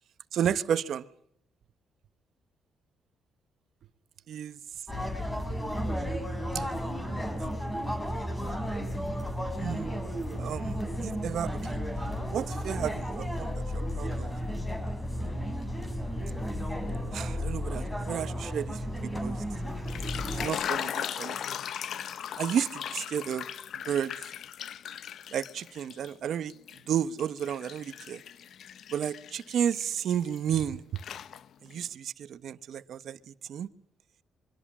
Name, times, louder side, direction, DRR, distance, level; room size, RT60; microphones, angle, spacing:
voice 1, 0.3-1.1 4.3-4.6 6.5-7.2 9.6-9.9 10.4-11.8 12.3-14.3 17.1-18.8 19.2-19.4 20.3-21.4 22.4-23.5 23.7-24.1 25.3-26.5 26.9-28.2 28.9-30.8 31.6-33.7, right 9 dB, 65° right, 1.2 m, -32 dB
sound 1, 4.9-20.5, equal, 10° left, 5.3 m, -33 dB
sound 2, 19.7-26.1 26.5-30.6 31.0-31.8, left 9 dB, 65° left, 0.9 m, -38 dB
25.0 x 24.0 x 6.3 m
cardioid pair, 90°, 0 cm